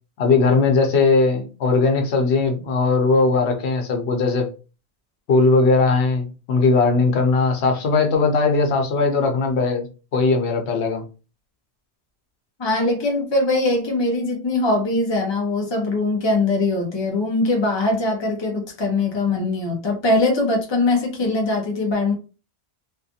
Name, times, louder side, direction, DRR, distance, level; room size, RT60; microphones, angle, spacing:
voice 1, 0.2-4.5 5.3-11.0, left 3 dB, 85° left, 1.0 m, -19 dB
voice 2, 12.6-22.1, left 2 dB, 30° left, 0.7 m, -21 dB
2.5 x 2.4 x 2.7 m
omnidirectional pair, 1.1 m